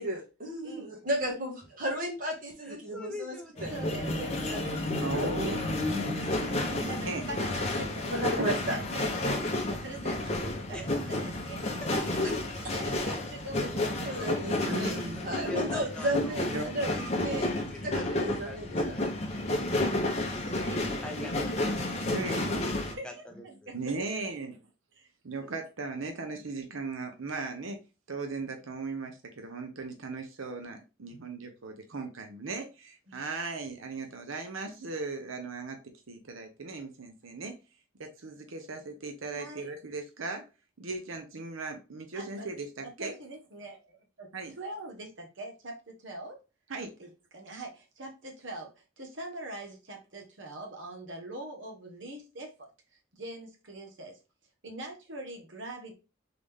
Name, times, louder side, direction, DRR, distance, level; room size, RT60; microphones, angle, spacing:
voice 1, 0.0-3.4 3.6-3.7 4.2-4.7 5.1-5.6 6.0-6.1 8.1-8.8 9.1-9.2 14.0-14.9 15.2-16.9 17.2-17.5 17.8-18.7, right 1 dB, 45° right, 1.5 m, -34 dB
voice 2, 2.6-3.8 5.8-6.6 10.7-11.1 12.1-12.6 13.7-14.2 14.8-16.4 17.0-18.1 18.4-20.0 20.3-20.5 21.0-22.4 22.7-23.7, left 2 dB, 5° left, 0.5 m, -46 dB
voice 3, 3.5-4.3 4.6-4.8 6.0-6.1 6.7-8.2 8.5-10.8 11.1-12.3 12.7-14.7 18.1-18.3 20.2-22.6 22.9-23.1 23.4-24.2 24.9-25.1 25.4-25.5 33.1-33.3 34.0-34.1 39.3-39.7 42.1-42.5 42.8-43.8 44.2-44.3 44.6-46.4 47.0-52.7 53.1-54.2 54.6-56.0, right 2 dB, 70° right, 1.3 m, -43 dB
sound 1, 3.6-22.9, left 1 dB, 30° left, 0.8 m, -31 dB
voice 4, 5.0-7.2 14.6-15.4 16.5-16.6 22.1-22.6 23.7-24.6 25.2-27.8 28.1-35.8 36.1-37.6 38.0-40.4 40.8-43.2 44.3-44.5 46.7-46.9, right 3 dB, 85° right, 0.8 m, -37 dB
3.9 x 3.5 x 3.5 m
head